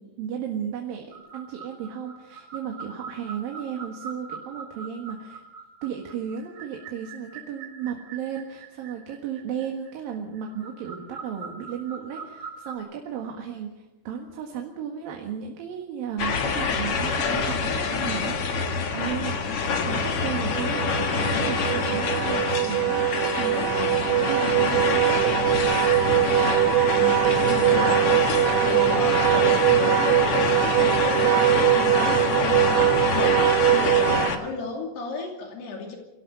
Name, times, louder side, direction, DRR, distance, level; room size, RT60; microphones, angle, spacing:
voice 1, 0.0-5.4 5.8-19.5 19.8-25.4, right 8 dB, 65° right, 2 dB, 3.3 m, -35 dB
sound 1, 1.1-12.8, right 5 dB, 45° right, 3.3 m, -42 dB
sound 2, 16.2-34.4, left 5 dB, 45° left, 2.1 m, -26 dB
Wind instrument woodwind instrument, 19.9-34.3, right 14 dB, 80° right, 3.0 m, -22 dB
voice 2, 26.9-36.0, left 3 dB, 80° left, 1 dB, 4.9 m, -33 dB
24.5 x 17.5 x 6.7 m, 0.98 s
omnidirectional pair, 4.6 m